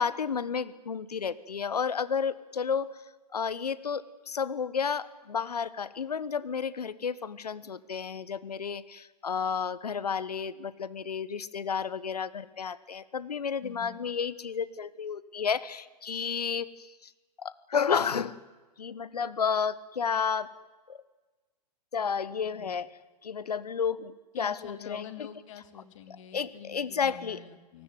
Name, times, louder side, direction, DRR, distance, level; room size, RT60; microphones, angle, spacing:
voice 1, 0.0-3.0 3.3-17.1 17.4-18.4 18.8-20.5 20.9-21.0 21.9-22.9 23.2-25.3 26.1-27.4, left 6 dB, 70° left, 17 dB, 1.4 m, -32 dB
voice 2, 13.6-14.0 22.6-22.8 24.3-27.8, left 9 dB, 50° left, 9 dB, 2.9 m, -46 dB
28.5 x 19.0 x 9.6 m, 1.2 s
figure-of-eight pair, 115°, 21 cm